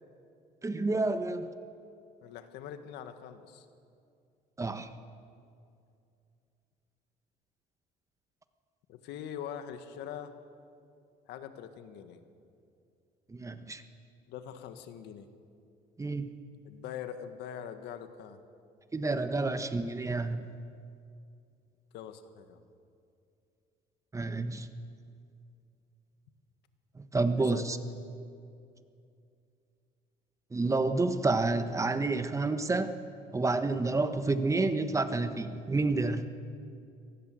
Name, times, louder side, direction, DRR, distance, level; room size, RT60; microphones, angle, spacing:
voice 1, 0.6-1.5 4.6-4.9 13.3-13.8 16.0-16.3 18.9-20.5 24.1-24.7 27.1-27.8 30.5-32.9 33.3-36.3, right 3 dB, 20° right, 9 dB, 1.3 m, -29 dB
voice 2, 2.2-3.6 8.9-10.3 11.3-12.2 14.3-15.3 16.6-18.4 21.9-22.6 27.3-27.8, left 9 dB, 85° left, 9 dB, 1.7 m, -43 dB
24.0 x 19.0 x 7.8 m, 2.5 s
cardioid pair, 110°, 17 cm